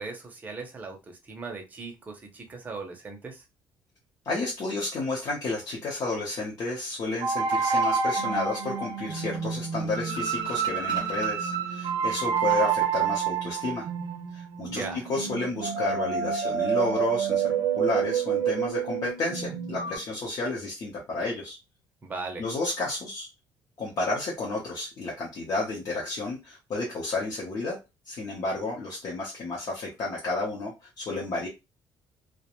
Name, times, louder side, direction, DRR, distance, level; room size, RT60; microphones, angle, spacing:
voice 1, 0.0-3.4 14.7-15.1 22.0-22.4, right 4 dB, 20° right, 0.6 m, -38 dB
voice 2, 4.2-13.9 14.3-14.8 15.1-21.6 22.4-23.3 23.8-27.8 28.1-31.5, left 3 dB, 45° left, 0.7 m, -31 dB
sound 1, 7.2-20.0, right 7 dB, 65° right, 0.6 m, -28 dB
2.4 x 2.1 x 2.9 m
cardioid pair, 175°, 8 cm